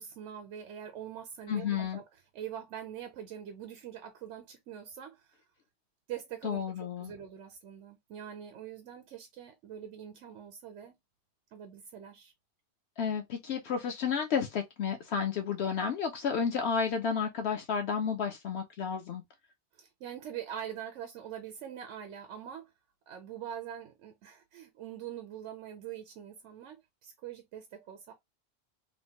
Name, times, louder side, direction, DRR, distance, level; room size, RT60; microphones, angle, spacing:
voice 1, 0.0-2.0 2.3-5.3 6.1-11.0 11.5-12.3 19.8-22.7 23.1-28.1, right 9 dB, 80° right, 0.9 m, -44 dB
voice 2, 1.5-2.0 6.4-7.1 13.0-19.2, left 6 dB, 70° left, 0.8 m, -31 dB
3.1 x 2.1 x 2.7 m
omnidirectional pair, 1.2 m